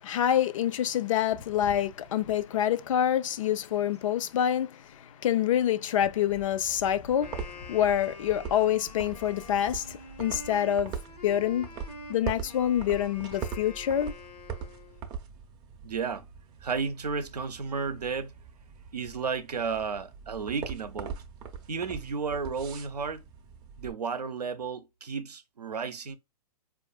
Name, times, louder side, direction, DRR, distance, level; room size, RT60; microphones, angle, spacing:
voice 1, 0.0-11.7 12.1-14.1, left 10 dB, 55° left, 0.4 m, -27 dB
sound 1, 6.3-23.9, right 7 dB, 20° right, 0.5 m, -42 dB
Wind instrument woodwind instrument, 7.1-15.1, left 3 dB, 85° left, 0.9 m, -46 dB
voice 2, 15.8-16.3 16.6-18.3 18.9-21.2 21.7-23.2 23.8-26.2, right 5 dB, 85° right, 0.6 m, -33 dB
4.5 x 2.4 x 2.3 m
hypercardioid pair, 120°, 20 cm